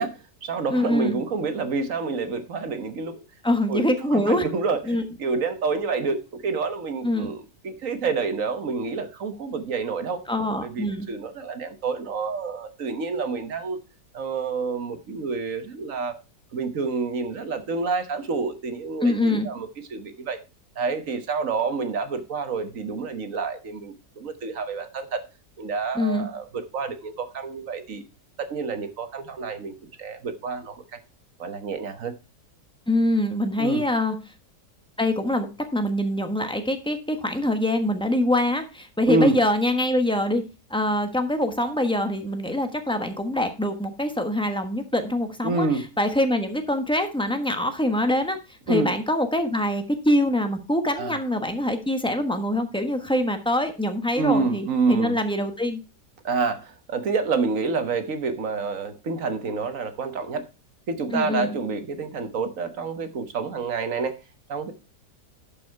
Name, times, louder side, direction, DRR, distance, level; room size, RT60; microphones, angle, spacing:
voice 1, 0.0-3.2 3.7-4.8 5.2-7.4 7.6-10.2 10.6-13.8 14.1-16.2 16.5-20.4 20.8-25.2 25.6-28.0 28.4-29.7 30.0-31.0 31.4-32.1 33.6-33.9 39.1-39.4 45.4-45.9 48.7-48.9 51.0-51.2 54.2-55.2 56.2-60.4 60.9-64.2 64.5-64.7, right 4 dB, 55° right, 1.5 m, -28 dB
voice 2, 0.7-1.2 3.4-4.4 4.9-5.0 7.0-7.3 10.3-11.1 19.0-19.5 25.9-26.3 32.9-34.2 35.0-40.4 40.7-48.4 48.7-55.8 61.1-61.5, left 1 dB, 5° left, 1.0 m, -24 dB
12.0 x 5.5 x 4.6 m
omnidirectional pair, 1.8 m